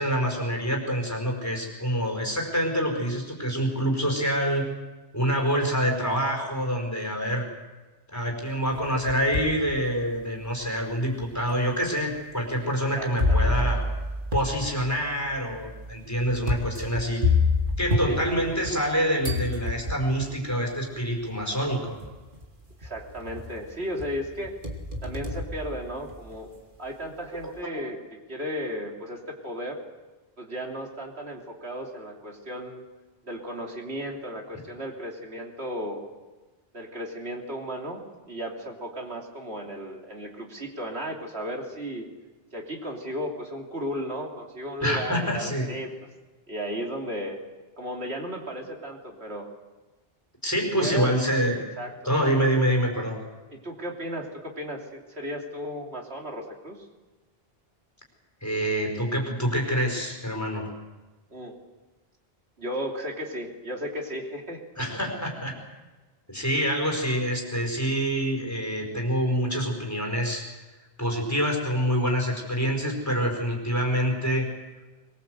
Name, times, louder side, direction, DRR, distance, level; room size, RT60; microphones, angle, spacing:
voice 1, 0.0-4.7 5.1-7.5 8.1-13.8 14.3-17.2 17.8-22.0 27.3-27.7 44.8-45.7 50.4-51.6 52.0-53.2 58.4-60.7 64.8-65.5 66.3-70.4 71.0-74.5, equal, 15° left, 1 dB, 5.1 m, -26 dB
sound 1, 8.7-9.6 10.2-10.3 11.2-11.3 13.2-18.9 19.2-20.2 21.4-21.5 22.0-22.4 22.8-23.6 24.0-26.4, left 3 dB, 50° right, 2.9 m, -28 dB
voice 2, 12.6-13.7 18.0-18.2 22.8-24.5 25.0-26.5 26.8-29.8 30.4-32.8 33.2-36.1 36.7-38.0 38.3-42.1 42.5-45.9 46.5-47.4 47.8-49.5 50.6-51.1 51.8-52.1 53.5-56.8 61.3-61.5 62.6-64.6, equal, 80° right, 1 dB, 3.4 m, -35 dB
23.0 x 22.0 x 7.9 m, 1.2 s
omnidirectional pair, 1.1 m